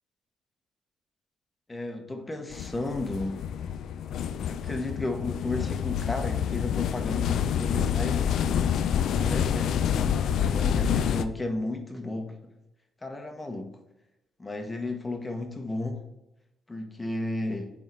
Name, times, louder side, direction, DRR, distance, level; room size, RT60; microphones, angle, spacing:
voice 1, 1.7-3.4 4.5-8.3 9.2-10.1 10.4-12.5 13.0-13.8 14.4-16.0 16.7-17.7, left 2 dB, 20° left, 4 dB, 1.2 m, -33 dB
sound 1, 2.5-11.2, left 8 dB, 70° left, 0.4 m, -27 dB
9.0 x 3.7 x 4.1 m, 0.91 s
cardioid pair, 90°, 0 cm